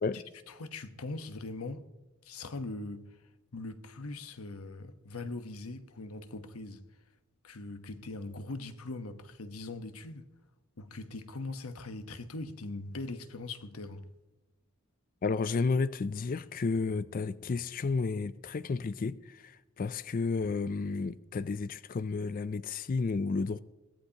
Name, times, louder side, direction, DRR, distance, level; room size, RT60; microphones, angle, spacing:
voice 1, 0.1-1.9 2.2-6.8 7.4-10.3 10.8-14.1, left 2 dB, 85° left, 1.1 m, -41 dB
voice 2, 15.2-23.6, left 4 dB, 40° left, 0.4 m, -32 dB
22.5 x 15.5 x 2.9 m
head